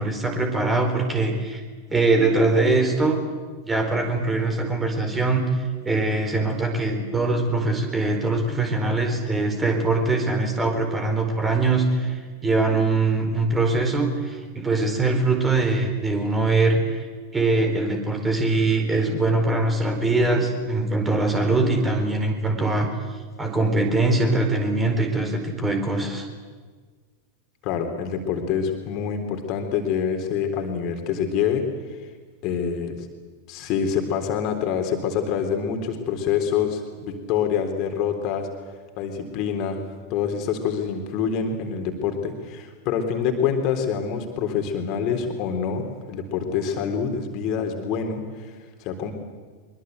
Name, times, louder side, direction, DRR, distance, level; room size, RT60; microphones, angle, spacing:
voice 1, 0.0-1.6 1.9-3.2 3.6-17.1 17.3-22.9 23.4-26.3, right 3 dB, 15° right, 5 dB, 4.4 m, -22 dB
voice 2, 27.6-32.0 32.4-33.1 33.5-38.5 39.0-39.8 40.1-49.1, left 7 dB, 40° left, 4 dB, 3.6 m, -26 dB
23.5 x 23.5 x 8.2 m, 1.5 s
figure-of-eight pair, 90°, 0 cm